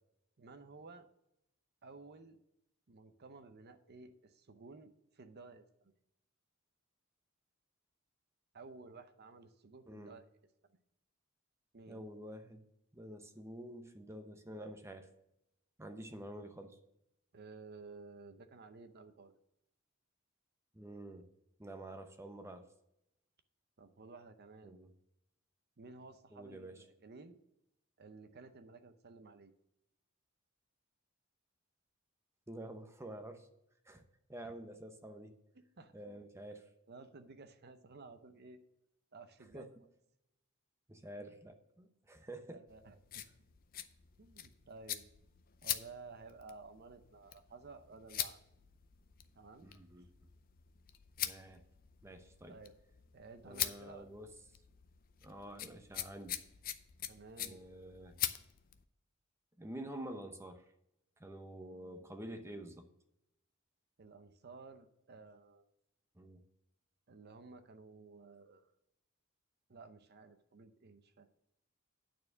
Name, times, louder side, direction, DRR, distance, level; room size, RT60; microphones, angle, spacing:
voice 1, 0.4-1.1 1.8-2.4 2.9-5.9 8.5-10.2 11.7-12.1 17.3-19.4 23.8-24.8 25.8-27.4 28.0-29.5 34.4-34.5 35.5-35.9 36.9-38.6 39.1-39.7 41.2-41.3 42.5-43.2 44.2-45.1 45.6-48.4 49.4-49.7 52.5-52.7 53.1-54.2 57.1-57.6 64.0-65.6 67.1-68.7 69.7-71.3, right 3 dB, 50° right, 9 dB, 0.7 m, -54 dB
voice 2, 11.9-12.6 12.9-15.1 15.8-16.8 20.7-21.3 21.6-22.7 24.6-24.9 26.3-26.7 32.5-33.5 33.9-34.0 34.3-35.3 35.9-36.7 39.5-39.7 40.9-42.6 49.6-50.1 51.2-51.6 52.0-52.6 53.4-54.3 55.2-56.4 57.4-58.2 59.6-60.6 61.2-62.9 66.2-66.4, right 1 dB, 15° right, 7 dB, 0.7 m, -48 dB
sound 1, 42.7-58.8, left 11 dB, 45° left, 0.5 m, -44 dB
9.3 x 4.4 x 6.9 m, 0.83 s
head